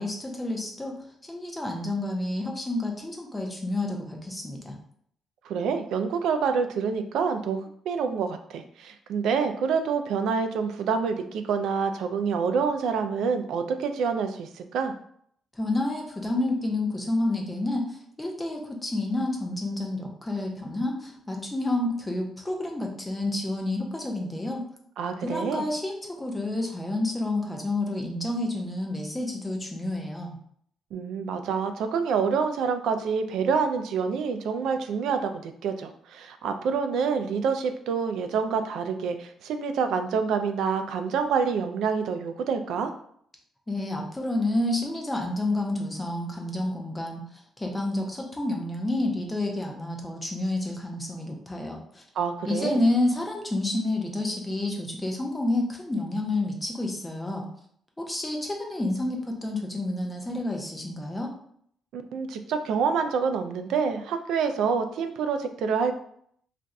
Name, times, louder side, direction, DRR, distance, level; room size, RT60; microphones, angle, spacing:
voice 1, 0.0-4.8 15.5-24.6 25.2-30.4 43.7-52.0 52.5-57.5 58.0-61.3, left 2 dB, 10° left, 1 dB, 0.5 m, -29 dB
voice 2, 5.4-14.9 25.0-25.7 30.9-42.9 52.2-52.8 61.9-65.9, right 6 dB, 75° right, 7 dB, 0.3 m, -27 dB
2.5 x 2.3 x 4.0 m, 0.65 s
cardioid pair, 160°, 0 cm